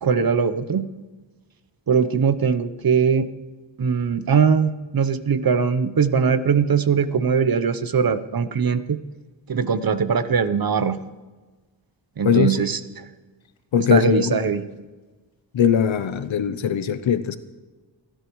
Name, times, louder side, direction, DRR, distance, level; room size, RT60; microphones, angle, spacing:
voice 1, 0.0-0.8 1.9-3.3 3.8-9.0 9.5-11.0 12.2-13.0 13.9-14.6, right 6 dB, 50° right, 12 dB, 0.8 m, -21 dB
voice 2, 12.2-12.7 13.7-14.5 15.5-17.4, left 8 dB, 85° left, 12 dB, 0.8 m, -20 dB
29.0 x 10.0 x 3.1 m, 1.3 s
wide cardioid pair, 75°, 45 cm